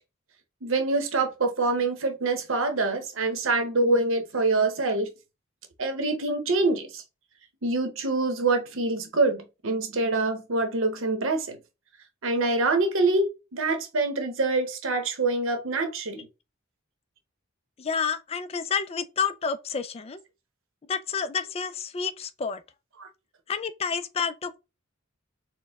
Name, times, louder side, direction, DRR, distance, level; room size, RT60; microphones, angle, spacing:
voice 1, 0.6-5.1 5.8-7.0 7.6-11.6 12.2-16.3 23.0-23.1, right 3 dB, 65° right, 0.8 m, -25 dB
voice 2, 17.8-20.2 20.9-22.6 23.5-24.6, left 6 dB, 30° left, 0.3 m, -29 dB
4.3 x 2.1 x 3.4 m
head